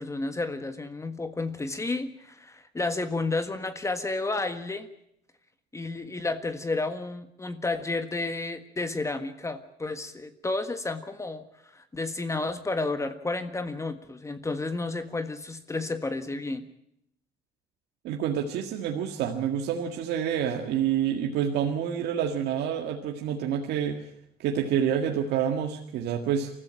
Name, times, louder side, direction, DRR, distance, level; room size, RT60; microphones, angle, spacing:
voice 1, 0.0-4.9 5.7-11.4 11.7-16.6, left 3 dB, 15° left, 9 dB, 1.6 m, -31 dB
voice 2, 18.0-24.0 24.4-26.5, right 8 dB, 80° right, 3 dB, 1.9 m, -28 dB
24.0 x 15.0 x 8.9 m, 0.75 s
cardioid pair, 110°, 17 cm